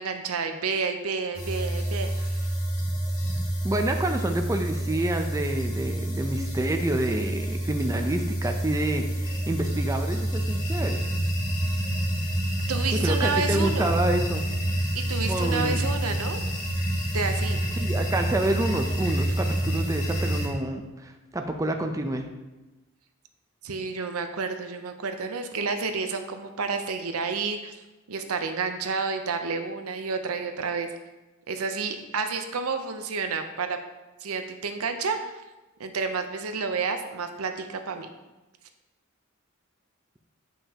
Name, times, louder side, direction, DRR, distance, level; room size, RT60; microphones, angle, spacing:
voice 1, 0.0-2.5 12.7-13.9 14.9-16.4 17.1-17.6 23.6-27.8 28.1-30.9 31.5-33.8 34.2-35.3 35.8-38.1, right 4 dB, 90° right, 6 dB, 0.7 m, -30 dB
sound 1, 1.3-20.5, right 1 dB, 65° left, 2.4 m, -28 dB
voice 2, 3.6-11.0 12.9-14.5 15.3-15.8 17.7-22.3, right 1 dB, 15° right, 4 dB, 0.5 m, -28 dB
9.1 x 5.6 x 2.9 m, 1.1 s
head